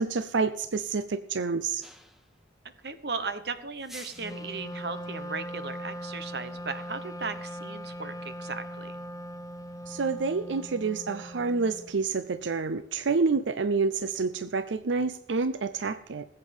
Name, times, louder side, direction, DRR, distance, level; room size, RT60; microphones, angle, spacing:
voice 1, 0.0-1.8 9.9-16.2, right 4 dB, 90° right, 12 dB, 0.6 m, -28 dB
sound 1, 1.8-2.4 3.8-4.6, equal, ahead, 1.0 m, -48 dB
voice 2, 2.8-9.0, right 4 dB, 60° right, 11 dB, 1.2 m, -36 dB
Wind instrument woodwind instrument, 4.1-12.0, equal, 20° left, 0.5 m, -40 dB
19.5 x 8.3 x 5.4 m, 0.81 s
head